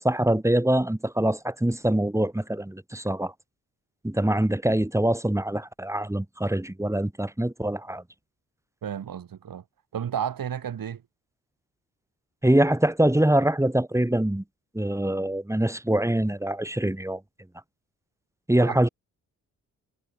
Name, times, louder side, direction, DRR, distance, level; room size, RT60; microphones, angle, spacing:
voice 1, 0.0-3.3 4.0-8.0 12.4-14.4 14.7-17.2 18.5-18.9, right 1 dB, 5° right, 3.1 m, -24 dB
voice 2, 8.8-9.6 9.9-11.0 18.6-18.8, right 8 dB, 50° right, 4.3 m, -32 dB
hypercardioid pair, 45°, 42 cm